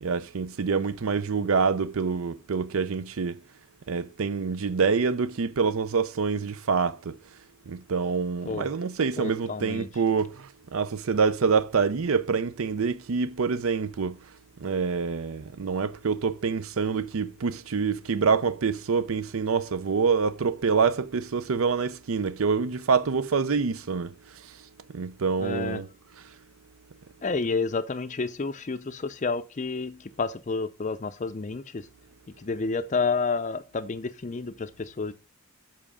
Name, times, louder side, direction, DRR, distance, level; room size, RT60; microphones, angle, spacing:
voice 1, 0.0-3.4 3.9-7.1 7.7-14.1 14.6-24.1 24.9-25.9, right 5 dB, 75° right, 0.5 m, -26 dB
voice 2, 9.2-9.9 25.4-25.8 27.2-31.9 32.4-35.1, left 4 dB, 35° left, 0.5 m, -30 dB
7.5 x 5.8 x 4.9 m
head